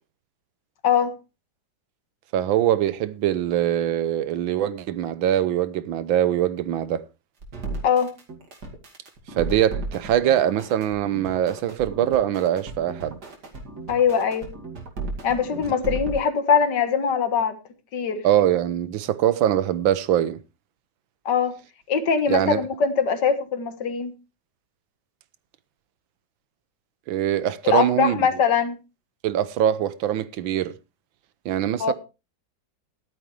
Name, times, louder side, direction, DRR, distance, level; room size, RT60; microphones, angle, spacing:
voice 1, 0.8-1.2 7.8-8.1 13.9-14.5 15.2-17.6 17.9-18.2 21.3-21.6 21.9-24.2 27.6-28.8 31.8-31.9, left 6 dB, 65° left, 2.0 m, -22 dB
voice 2, 2.3-7.1 9.4-13.2 18.2-20.4 22.3-22.6 27.1-28.2 29.2-30.7 31.5-31.9, right 11 dB, 85° right, 1.6 m, -23 dB
sound 1, 7.4-16.2, right 3 dB, 55° right, 2.9 m, -34 dB
14.0 x 12.0 x 3.2 m
omnidirectional pair, 2.1 m